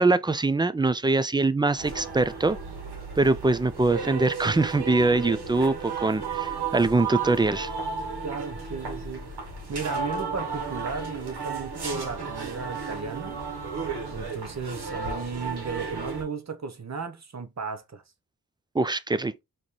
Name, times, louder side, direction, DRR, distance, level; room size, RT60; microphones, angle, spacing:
voice 1, 0.0-2.6 3.2-7.7 18.7-19.4, right 3 dB, 10° right, 0.3 m, -23 dB
sound 1, 1.8-16.2, right 5 dB, 75° right, 1.5 m, -34 dB
voice 2, 8.2-9.4 9.7-13.4 14.1-18.0, right 5 dB, 45° right, 0.9 m, -35 dB
5.1 x 3.0 x 3.1 m
cardioid pair, 70°, 39 cm